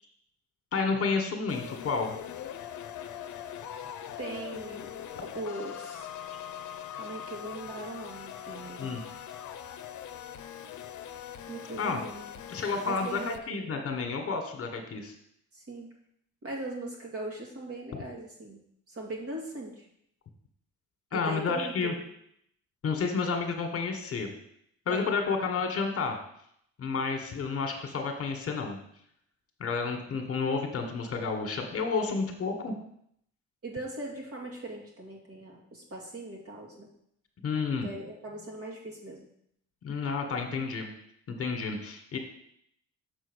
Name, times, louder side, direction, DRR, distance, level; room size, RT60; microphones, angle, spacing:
voice 1, 0.7-2.1 8.8-9.0 11.8-12.0 12.5-15.1 21.1-21.9 22.8-24.3 24.9-26.2 26.8-28.8 29.6-32.7 37.4-37.9 39.8-40.9 41.3-42.2, left 4 dB, 50° left, 4 dB, 1.5 m, -30 dB
sound 1, 1.5-13.4, left 9 dB, 75° left, 0.7 m, -42 dB
voice 2, 4.2-4.9 5.3-6.1 6.9-9.0 11.5-12.2 12.9-13.8 15.5-15.9 16.4-18.6 18.9-19.9 21.1-22.1 24.9-25.1 31.9-32.2 33.6-36.9 37.8-39.3, right 2 dB, 50° right, -1 dB, 2.5 m, -40 dB
6.8 x 4.4 x 6.3 m, 0.71 s
cardioid pair, 90°, 30 cm